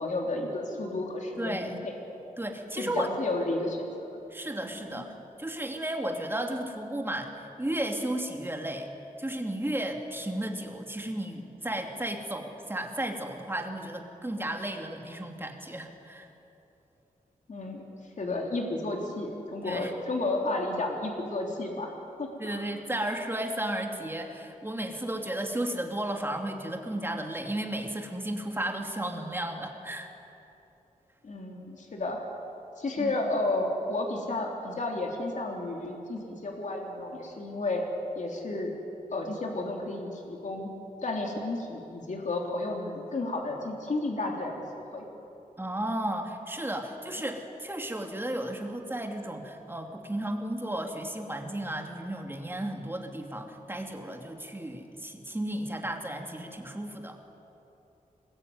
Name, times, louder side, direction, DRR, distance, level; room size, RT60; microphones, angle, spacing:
voice 1, 0.0-1.8 2.8-4.2 4.9-5.0 17.5-17.8 18.2-21.9 22.2-22.6 31.2-32.2 32.8-37.8 38.2-38.7 39.1-40.7 41.0-44.6 44.9-45.0, left 2 dB, 60° left, 0 dB, 3.5 m, -32 dB
voice 2, 1.4-1.8 2.4-3.1 4.3-5.1 5.4-8.9 9.2-16.3 19.6-19.9 22.4-30.1 33.0-33.1 45.6-57.2, right 1 dB, 15° right, 3 dB, 2.7 m, -34 dB
25.5 x 21.5 x 9.6 m, 3.0 s
wide cardioid pair, 115°, 15 cm